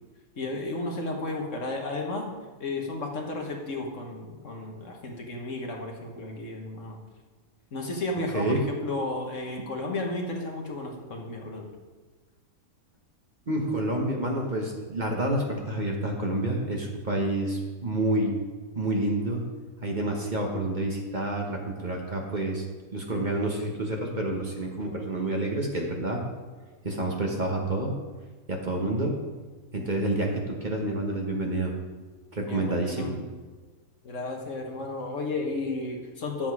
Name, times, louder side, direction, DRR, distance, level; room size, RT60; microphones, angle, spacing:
voice 1, 0.4-2.3 2.6-7.0 7.7-11.7 32.5-33.3 34.0-36.5, left 2 dB, 60° left, 1 dB, 1.6 m, -33 dB
voice 2, 8.3-8.6 13.5-18.3 18.7-19.4 19.8-22.6 22.9-26.2 26.8-28.0 28.5-29.2 29.7-31.7 32.3-33.1, right 1 dB, 35° right, 0 dB, 1.2 m, -28 dB
10.0 x 7.5 x 4.8 m, 1.3 s
omnidirectional pair, 1.5 m